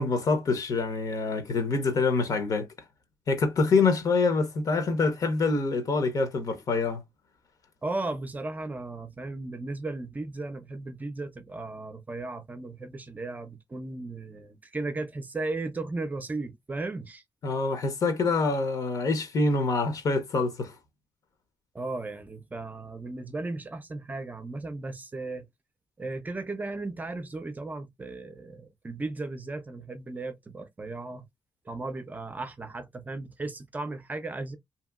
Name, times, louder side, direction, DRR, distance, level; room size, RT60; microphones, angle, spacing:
voice 1, 0.0-2.7 3.3-7.0 17.4-20.7, left 3 dB, 55° left, 0.8 m, -25 dB
voice 2, 7.8-17.2 21.7-25.5 26.0-31.3 31.7-34.6, right 2 dB, 25° right, 0.5 m, -36 dB
2.8 x 2.7 x 2.3 m
cardioid pair, 105°, 7 cm